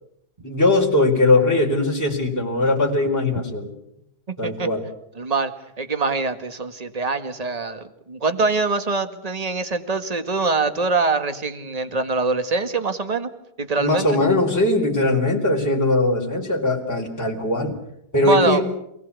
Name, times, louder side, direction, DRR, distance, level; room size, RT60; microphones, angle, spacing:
voice 1, 0.4-3.7 4.4-4.8 13.8-17.7 18.1-18.6, left 2 dB, 10° left, -1 dB, 4.0 m, -20 dB
voice 2, 5.2-5.5 5.8-13.3 13.6-14.1 18.2-18.6, right 3 dB, 20° right, 9 dB, 1.8 m, -23 dB
28.0 x 19.0 x 8.4 m, 0.79 s
omnidirectional pair, 2.2 m